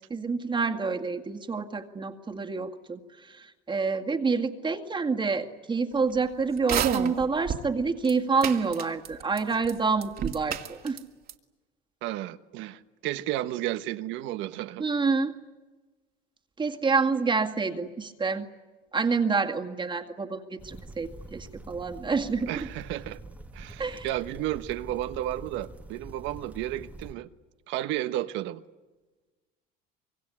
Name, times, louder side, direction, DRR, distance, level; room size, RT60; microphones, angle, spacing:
voice 1, 0.1-11.0 14.8-15.4 16.6-18.5 18.9-22.7 23.8-24.1, right 4 dB, 25° right, 2.1 m, -28 dB
sound 1, 6.6-7.7 8.0-8.1 8.4-9.4 9.6-9.7 10.0-11.0 11.3-11.4, right 9 dB, 50° right, 2.4 m, -29 dB
voice 2, 12.0-14.8 22.5-23.2 23.5-27.3 27.7-28.6, right 14 dB, 75° right, 1.3 m, -32 dB
sound 2, 20.6-27.1, right 1 dB, 5° right, 1.5 m, -45 dB
25.5 x 23.0 x 9.9 m
cardioid pair, 110°, 20 cm